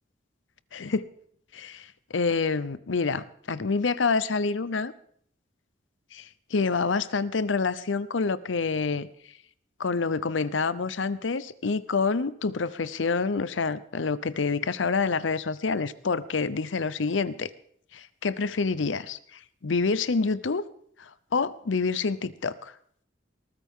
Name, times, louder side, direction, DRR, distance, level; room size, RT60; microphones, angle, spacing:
voice 1, 0.7-1.0 1.5-4.9 6.1-9.1 9.8-17.5 17.9-20.6 21.0-22.7, left 4 dB, 90° left, 17 dB, 0.7 m, -27 dB
20.5 x 14.0 x 3.7 m, 0.63 s
head